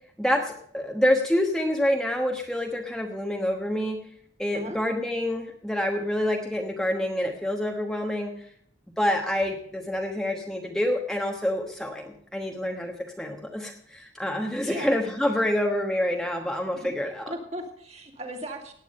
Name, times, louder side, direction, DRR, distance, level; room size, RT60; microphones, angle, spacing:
voice 1, 0.2-4.0 4.4-8.3 9.0-17.3, left 1 dB, 5° left, 1 dB, 1.2 m, -27 dB
voice 2, 14.6-14.9 16.6-18.7, right 1 dB, 35° right, 2 dB, 2.7 m, -38 dB
17.0 x 9.6 x 5.4 m, 0.66 s
head